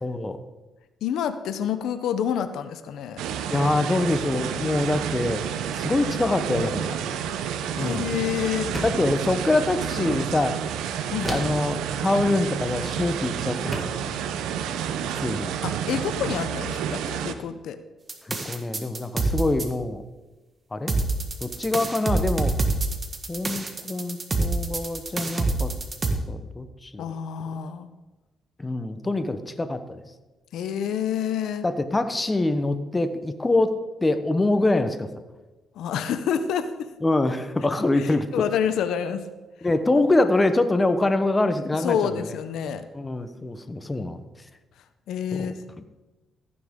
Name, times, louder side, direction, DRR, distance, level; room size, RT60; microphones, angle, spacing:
voice 1, 0.0-0.4 3.5-5.4 5.7-7.0 7.8-8.1 8.8-10.6 11.3-13.9 15.2-15.5 18.3-20.0 20.7-20.9 21.4-22.5 23.3-25.7 26.3-27.0 28.6-30.0 31.6-33.7 34.0-35.1 37.0-38.4 39.6-42.3 42.9-44.2 45.3-45.8, left 2 dB, 20° left, 9 dB, 0.9 m, -25 dB
voice 2, 1.0-3.2 7.8-8.7 11.1-11.3 15.6-17.8 27.0-27.9 30.5-31.7 35.8-36.7 37.9-39.2 41.8-42.9 45.1-45.5, left 8 dB, 80° left, 10 dB, 0.7 m, -28 dB
sound 1, 3.2-17.3, right 8 dB, 90° right, 0.7 m, -30 dB
sound 2, 8.7-9.2 11.2-11.7 13.0-13.2 13.7-14.1, right 1 dB, 5° right, 2.2 m, -32 dB
sound 3, 18.1-19.7 20.9-26.1, right 3 dB, 30° right, 1.6 m, -26 dB
14.0 x 9.8 x 3.7 m, 1.1 s
cardioid pair, 90°, 0 cm